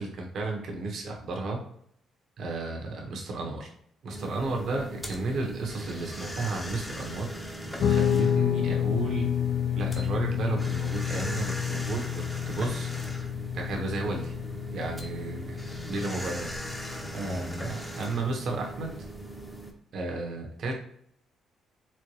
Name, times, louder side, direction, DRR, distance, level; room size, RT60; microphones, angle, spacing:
voice 1, 0.0-1.6 2.4-3.7 4.0-7.3 7.9-9.3 9.8-12.9 13.5-14.3 14.7-15.6 15.9-16.5 17.1-19.0 19.9-20.7, right 3 dB, 65° right, 1 dB, 1.0 m, -33 dB
sound 1, 4.1-19.7, equal, 10° left, 0.7 m, -39 dB
Guitar, 7.8-17.1, left 9 dB, 65° left, 0.5 m, -29 dB
4.3 x 2.2 x 3.1 m, 0.67 s
cardioid pair, 90°, 0 cm